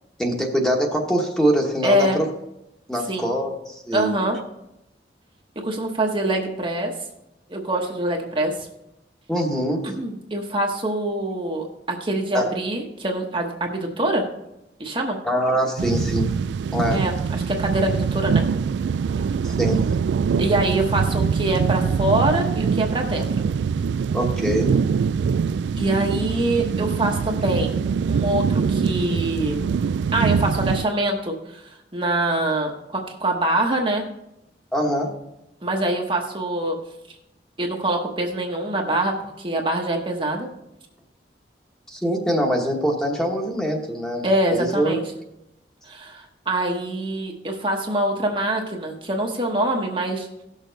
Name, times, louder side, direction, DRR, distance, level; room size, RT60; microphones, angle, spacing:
voice 1, 0.2-2.3 2.9-4.1 9.3-9.9 12.3-12.5 15.2-16.3 16.7-17.0 19.4-19.8 24.1-24.7 34.7-35.1 41.9-44.2 44.5-45.0, equal, 5° left, 0 dB, 1.2 m, -23 dB
voice 2, 1.8-2.2 3.1-3.3 3.9-4.4 5.6-6.9 7.5-8.7 9.8-14.2 14.8-15.2 16.9-18.4 20.4-23.3 25.8-27.8 28.1-29.6 30.1-31.6 31.9-34.0 35.6-36.8 37.6-40.5 44.2-45.0 45.9-50.3, right 1 dB, 30° right, 1 dB, 1.0 m, -24 dB
sound 1, 15.8-30.9, right 6 dB, 80° right, 0.3 m, -23 dB
16.5 x 6.6 x 4.0 m, 0.87 s
head